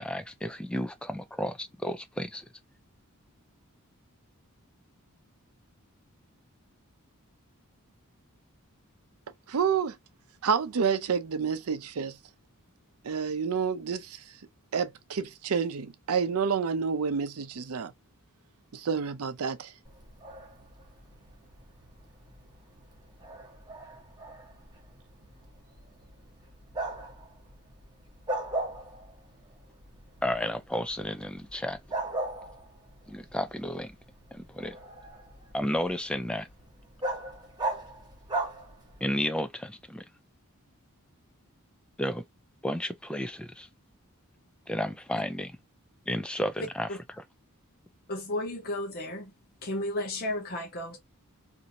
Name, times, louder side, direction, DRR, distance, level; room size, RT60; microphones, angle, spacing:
voice 1, 0.0-2.5 30.2-31.8 33.1-34.0 34.3-34.8 35.5-36.5 39.0-40.1 42.0-42.2 42.6-43.7 44.7-45.5 46.1-46.9 47.1-47.2, left 1 dB, 5° left, 0.3 m, -32 dB
voice 2, 9.5-9.9 10.4-12.1 13.0-14.2 14.7-17.9 18.7-19.7, right 6 dB, 75° right, 0.5 m, -29 dB
Bark, 19.8-39.2, right 2 dB, 20° right, 1.0 m, -39 dB
voice 3, 48.1-49.3 49.6-51.0, left 1 dB, 45° left, 0.7 m, -33 dB
2.9 x 2.6 x 2.6 m
head